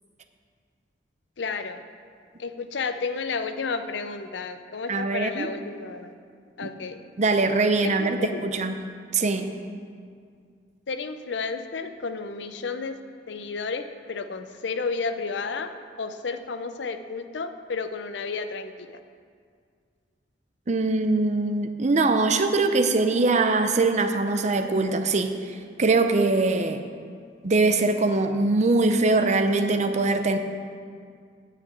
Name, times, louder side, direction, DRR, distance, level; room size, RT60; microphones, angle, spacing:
voice 1, 1.4-1.8 2.4-6.1 6.6-7.0 8.0-8.4 10.9-13.0 13.3-15.7 16.0-19.0, left 4 dB, 70° left, 9 dB, 0.6 m, -32 dB
voice 2, 4.9-5.5 6.6-6.7 7.2-8.8 9.1-9.5 20.7-26.8 27.4-30.4, right 3 dB, 40° right, 7 dB, 0.6 m, -22 dB
9.3 x 5.9 x 8.4 m, 2.2 s
head